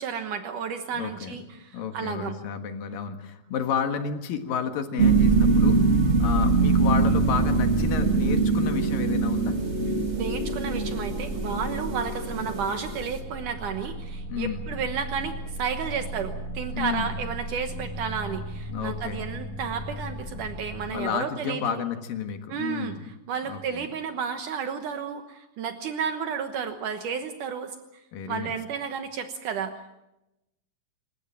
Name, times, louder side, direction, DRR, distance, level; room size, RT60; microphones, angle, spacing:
voice 1, 0.0-2.4 10.1-21.8 22.5-23.0 23.3-27.8 28.3-29.7, right 6 dB, 70° right, 7 dB, 2.6 m, -32 dB
voice 2, 0.9-1.4 1.7-5.8 6.2-9.6 14.3-14.7 16.7-17.1 18.7-19.3 20.9-23.1 23.5-23.9 28.1-28.6, left 7 dB, 85° left, 7 dB, 3.3 m, -31 dB
sound 1, 5.0-13.2, right 4 dB, 25° right, 1.6 m, -23 dB
sound 2, 10.8-21.2, right 1 dB, 65° left, 5.4 m, -37 dB
27.5 x 15.0 x 8.9 m, 0.91 s
omnidirectional pair, 3.9 m